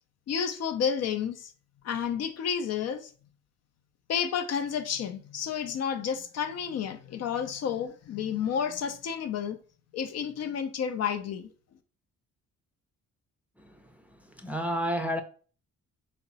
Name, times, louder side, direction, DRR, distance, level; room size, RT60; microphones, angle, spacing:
voice 1, 0.3-1.5 1.8-3.1 4.1-9.6 9.9-11.5, left 7 dB, 60° left, 0.5 m, -31 dB
voice 2, 14.4-15.2, equal, 5° right, 0.5 m, -30 dB
3.5 x 2.0 x 3.9 m
cardioid pair, 90°, 30 cm